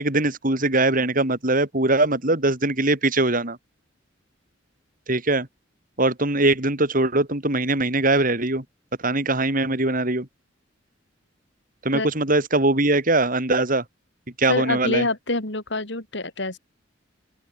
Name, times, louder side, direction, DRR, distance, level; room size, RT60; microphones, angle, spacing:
voice 1, 0.0-3.6 5.1-5.5 6.0-8.6 9.0-10.3 11.8-13.8 14.4-15.0, right 2 dB, 45° right, 4.5 m, -21 dB
voice 2, 14.5-16.6, left 2 dB, 65° left, 4.7 m, -26 dB
open air
head